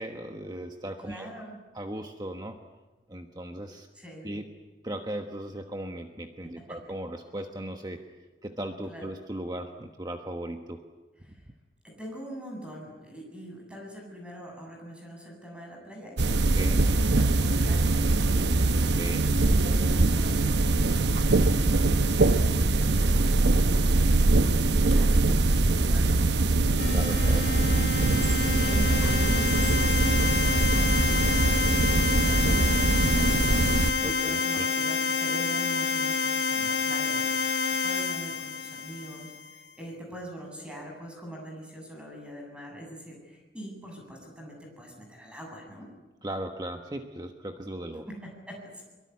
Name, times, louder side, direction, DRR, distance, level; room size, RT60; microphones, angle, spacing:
voice 1, 0.0-1.3 1.7-2.6 3.1-3.9 4.2-4.5 4.8-8.0 8.4-10.8 16.5-16.8 18.8-19.3 26.9-27.5 34.0-34.7 46.2-48.1, right 1 dB, 25° right, 5 dB, 1.3 m, -37 dB
voice 2, 1.0-1.5 4.0-4.3 6.7-6.8 8.9-9.1 11.3-11.4 11.8-19.0 19.3-45.9 48.1-48.8, equal, 5° right, 0 dB, 7.8 m, -43 dB
sound 1, 16.2-33.9, right 2 dB, 70° right, 1.0 m, -23 dB
sound 2, 26.8-39.5, left 5 dB, 65° left, 1.3 m, -28 dB
23.5 x 23.0 x 9.7 m, 1.2 s
head